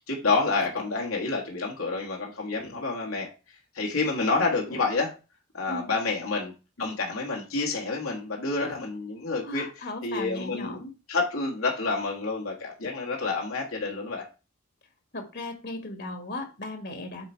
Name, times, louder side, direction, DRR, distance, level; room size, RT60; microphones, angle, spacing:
voice 1, 0.1-3.3 3.7-5.1 5.5-6.5 6.8-9.7 10.0-10.8 11.1-14.2, left 3 dB, 85° left, -2 dB, 1.7 m, -28 dB
voice 2, 9.4-10.9 15.1-17.3, left 2 dB, 50° left, 6 dB, 1.5 m, -36 dB
8.0 x 4.2 x 4.5 m, 0.31 s
head